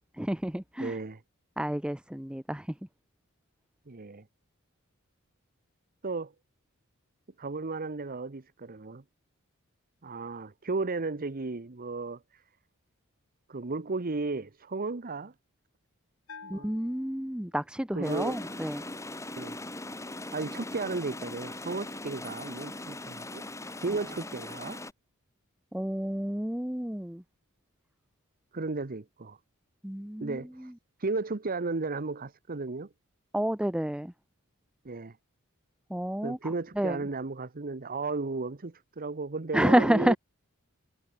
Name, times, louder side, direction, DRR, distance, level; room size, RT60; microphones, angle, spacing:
voice 1, 0.1-1.0 1.6-2.8 16.5-18.8 25.7-27.2 29.8-30.7 33.3-34.1 35.9-37.0 39.5-40.2, right 1 dB, 5° right, 0.7 m, -29 dB
voice 2, 0.8-1.2 3.9-4.2 6.0-6.3 7.4-9.0 10.0-12.4 13.5-15.3 16.4-16.7 17.9-18.4 19.4-19.6 20.3-23.4 23.8-24.8 28.5-29.4 30.2-30.7 31.0-32.9 34.8-35.2 36.2-40.2, right 3 dB, 40° right, 0.9 m, -34 dB
Bell, 16.3-17.9, left 5 dB, 65° left, 3.0 m, -50 dB
sound 1, 18.0-24.9, left 2 dB, 15° left, 1.8 m, -40 dB
head